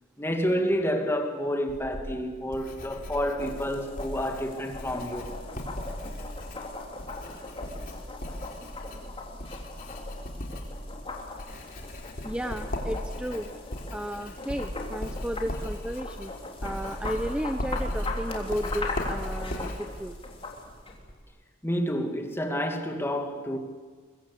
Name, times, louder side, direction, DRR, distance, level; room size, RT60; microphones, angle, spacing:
voice 1, 0.2-5.4 21.6-23.6, equal, 10° left, 2.3 m, -29 dB
Writing, 1.7-21.2, left 1 dB, 45° left, 3.8 m, -37 dB
sound 1, 3.4-21.0, left 3 dB, 30° left, 3.4 m, -40 dB
voice 2, 12.2-13.5 13.9-16.3 16.6-20.2, equal, 5° right, 0.8 m, -33 dB
23.5 x 22.0 x 8.5 m
head